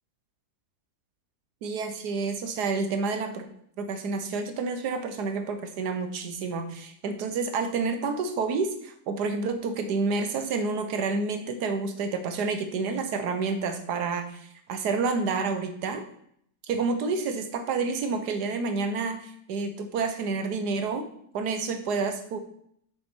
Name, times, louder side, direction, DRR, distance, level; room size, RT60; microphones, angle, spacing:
voice 1, 1.6-3.5 3.8-16.0 16.6-21.1 21.3-22.4, right 4 dB, 80° right, 7 dB, 1.4 m, -29 dB
6.9 x 6.7 x 4.4 m, 0.69 s
omnidirectional pair, 1.7 m